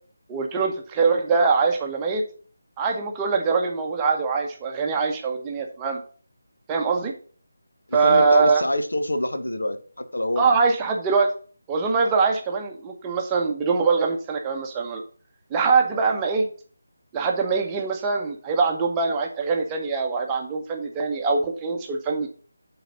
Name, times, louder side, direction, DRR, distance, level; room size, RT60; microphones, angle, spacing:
voice 1, 0.3-2.3 2.8-6.0 6.7-7.1 7.9-8.6 10.4-11.3 11.7-15.0 15.5-16.5 17.1-22.3, right 4 dB, 15° right, 0.9 m, -23 dB
voice 2, 7.9-10.6, left 1 dB, 65° left, 1.0 m, -26 dB
9.2 x 3.9 x 5.3 m
figure-of-eight pair, 155°, 0 cm